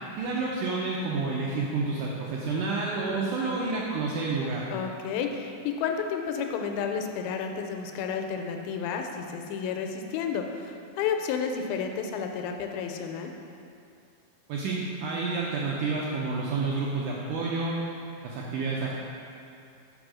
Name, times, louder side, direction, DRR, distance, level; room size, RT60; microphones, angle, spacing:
voice 1, 0.2-4.7 14.5-17.8 18.2-19.0, right 3 dB, 80° right, -4 dB, 1.8 m, -29 dB
voice 2, 3.1-3.6 4.7-13.3, left 6 dB, 85° left, 4 dB, 2.3 m, -31 dB
5.4 x 5.0 x 6.1 m, 2.5 s
omnidirectional pair, 4.2 m